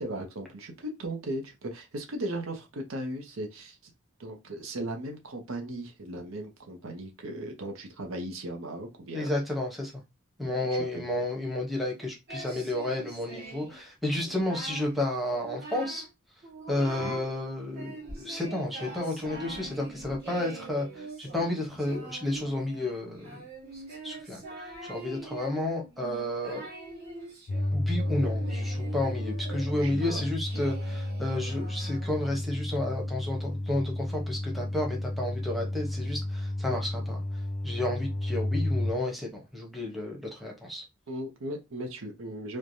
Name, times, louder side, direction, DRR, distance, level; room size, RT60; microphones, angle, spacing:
voice 1, 0.0-3.9 4.2-9.3 10.4-11.1 17.0-17.2 28.2-28.3 29.7-30.1 41.1-42.6, right 1 dB, 80° right, 0.7 m, -37 dB
voice 2, 9.1-10.0 10.4-16.0 16.7-23.4 24.0-24.4 24.8-26.7 27.7-37.2 37.6-40.8, left 1 dB, ahead, 0.8 m, -31 dB
Singing, 12.3-13.8 14.1-14.9 15.3-16.1 16.4-17.3 17.7-32.2, right 3 dB, 50° right, 1.2 m, -43 dB
sound 1, 27.5-38.9, left 1 dB, 45° left, 0.4 m, -32 dB
3.1 x 2.1 x 2.6 m
head